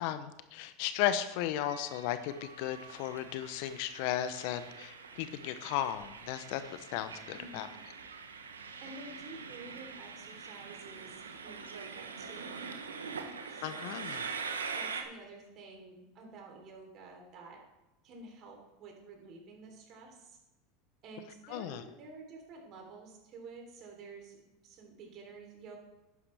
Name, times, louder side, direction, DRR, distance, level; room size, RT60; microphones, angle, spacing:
voice 1, 0.0-7.7 13.6-14.2 21.5-21.8, left 11 dB, 60° left, 12 dB, 0.8 m, -35 dB
Train, 1.6-15.0, right 5 dB, 90° right, 1.0 m, -44 dB
voice 2, 7.3-7.7 8.8-12.7 13.5-14.2 14.7-17.6 18.0-20.4 21.0-25.8, right 3 dB, 50° right, 1 dB, 3.5 m, -50 dB
11.0 x 9.7 x 3.5 m, 0.99 s
hypercardioid pair, 85°, 0 cm